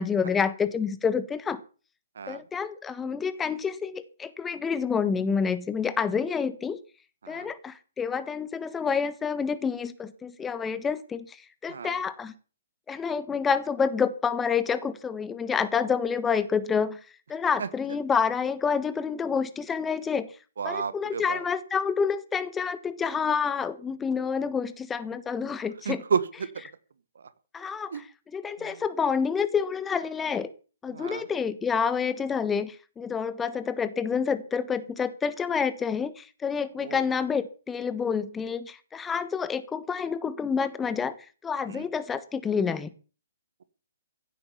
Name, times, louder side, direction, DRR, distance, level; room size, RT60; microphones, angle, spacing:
voice 1, 0.0-1.6 2.3-6.8 7.3-11.4 11.6-12.3 12.9-17.0 17.3-20.3 20.6-26.0 27.5-28.0 28.3-30.5 30.8-41.1 41.4-42.9, left 6 dB, 10° left, 13 dB, 1.3 m, -28 dB
voice 2, 20.6-21.4 25.8-26.5 27.1-27.3 27.9-28.1 28.6-28.8 30.9-31.3 36.8-37.0 41.7-41.9, right 6 dB, 65° right, 15 dB, 1.6 m, -32 dB
16.0 x 8.9 x 7.2 m, 0.37 s
figure-of-eight pair, 125°, 0 cm